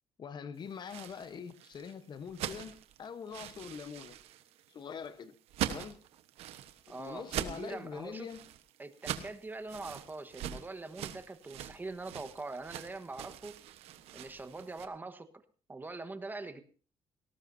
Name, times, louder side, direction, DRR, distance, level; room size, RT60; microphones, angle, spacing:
voice 1, 0.2-4.2 4.7-5.3 5.6-6.0 6.9-8.4, left 6 dB, 45° left, 1.0 m, -44 dB
sound 1, 0.7-14.9, right 11 dB, 90° right, 1.2 m, -43 dB
voice 2, 6.9-8.3 8.8-13.6 14.1-15.3 15.7-16.6, right 3 dB, 20° right, 1.3 m, -43 dB
18.5 x 18.0 x 2.7 m
cardioid pair, 115°, 10 cm